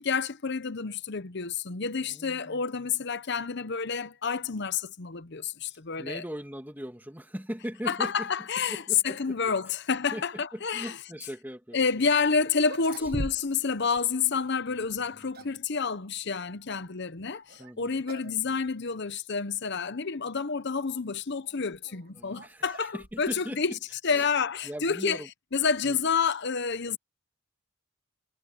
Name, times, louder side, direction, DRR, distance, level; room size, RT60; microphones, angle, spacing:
voice 1, 0.0-6.2 7.9-11.0 11.7-23.7 24.0-25.2 25.5-27.0, left 5 dB, 50° left, 0.8 m, -29 dB
voice 2, 2.0-2.9 6.0-8.3 8.7-9.5 10.1-12.1 13.0-13.1 14.9-15.6 17.6-18.6 22.1-23.6 24.1-24.3 24.6-25.3 25.8-26.0, equal, 10° right, 2.5 m, -40 dB
sound 1, 12.1-12.2 12.6-13.7 14.0-14.1 14.9-15.7 17.5-17.7 18.1-18.4 18.7-18.8 19.5-19.6 21.4-23.5, right 1 dB, 45° right, 1.6 m, -40 dB
head